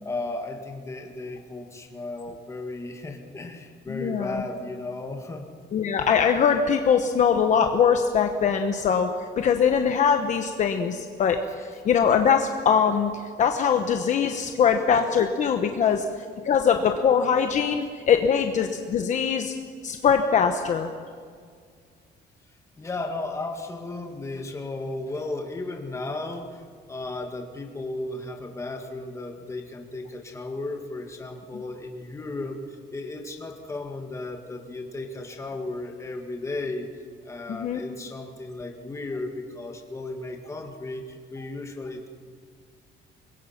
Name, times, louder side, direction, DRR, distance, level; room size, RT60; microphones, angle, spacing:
voice 1, 0.0-5.5 15.8-15.9 22.8-36.9 37.2-42.1, left 2 dB, 15° left, 3 dB, 1.9 m, -35 dB
voice 2, 3.9-4.4 5.7-11.4 11.8-13.1 13.4-16.0 16.4-19.5 19.8-20.9 37.5-37.8, left 7 dB, 40° left, 5 dB, 1.1 m, -22 dB
25.0 x 21.5 x 5.9 m, 2.1 s
cardioid pair, 175°, 19 cm